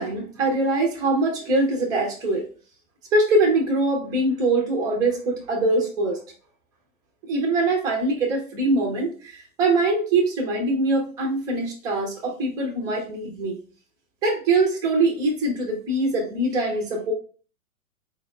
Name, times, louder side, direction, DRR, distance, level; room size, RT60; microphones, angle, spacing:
voice 1, 0.0-2.5 3.1-6.2 7.2-13.6 14.2-17.1, right 2 dB, 10° right, 0 dB, 0.3 m, -23 dB
4.3 x 2.0 x 3.6 m, 0.40 s
hypercardioid pair, 120°, 43 cm